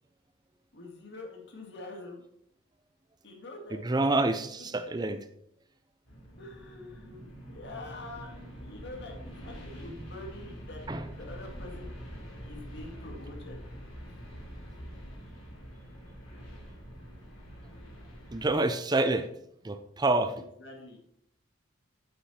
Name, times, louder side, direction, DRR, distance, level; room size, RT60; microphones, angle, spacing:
voice 1, 0.7-2.2 3.2-3.8 4.5-4.9 6.4-8.3 8.6-10.8 11.1-11.9 12.4-13.6 14.1-14.2 20.4-21.0, left 2 dB, 60° left, 1 dB, 2.1 m, -45 dB
voice 2, 3.7-5.2 10.9-11.0 18.3-19.3 19.6-20.4, right 2 dB, 20° right, 9 dB, 0.5 m, -27 dB
sound 1, 6.1-18.5, equal, 90° left, 3.2 m, -45 dB
8.8 x 8.1 x 4.3 m, 0.73 s
head